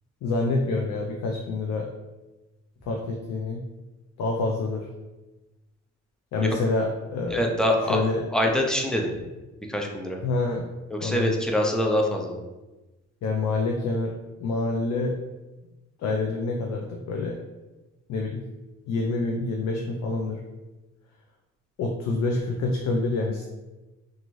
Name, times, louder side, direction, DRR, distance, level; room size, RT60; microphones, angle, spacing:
voice 1, 0.2-1.9 2.9-3.6 4.2-4.9 6.3-7.5 7.9-8.2 10.2-10.6 11.0-11.4 13.2-14.1 14.4-15.1 16.0-17.4 18.1-18.4 18.9-20.4 21.8-23.4, left 3 dB, 65° left, 0 dB, 0.5 m, -27 dB
voice 2, 7.3-8.0 8.3-9.1 9.7-10.2 10.9-12.4, equal, ahead, 1 dB, 0.4 m, -24 dB
2.5 x 2.5 x 3.0 m, 1.1 s
cardioid pair, 90°, 30 cm